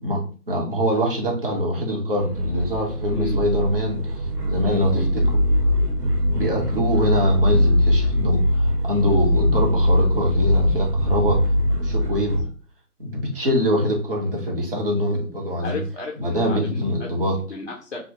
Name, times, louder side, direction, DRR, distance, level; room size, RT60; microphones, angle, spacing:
voice 1, 0.0-5.4 6.3-11.4 11.7-12.5 13.0-15.8 16.2-17.4, equal, 35° right, -1 dB, 0.8 m, -24 dB
sound 1, 2.2-12.4, equal, 90° right, 0.9 m, -21 dB
voice 2, 3.1-3.4 4.7-5.1 15.6-17.1 17.5-18.0, left 3 dB, 50° left, 0 dB, 0.5 m, -33 dB
2.9 x 2.1 x 2.8 m, 0.39 s
hypercardioid pair, 165°, 46 cm